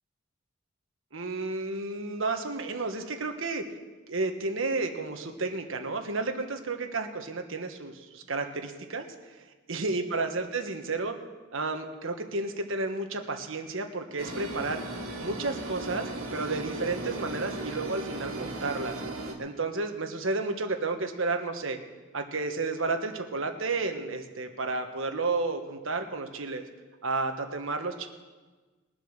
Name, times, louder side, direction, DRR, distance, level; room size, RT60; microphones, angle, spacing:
voice 1, 1.1-3.6 4.1-9.1 9.7-11.2 11.5-14.8 15.2-18.9 19.4-21.8 22.1-26.6 27.0-28.1, right 3 dB, 65° right, 5 dB, 1.4 m, -32 dB
sound 1, 14.2-19.3, right 2 dB, 85° right, 2.2 m, -36 dB
20.5 x 7.8 x 6.7 m, 1.3 s
head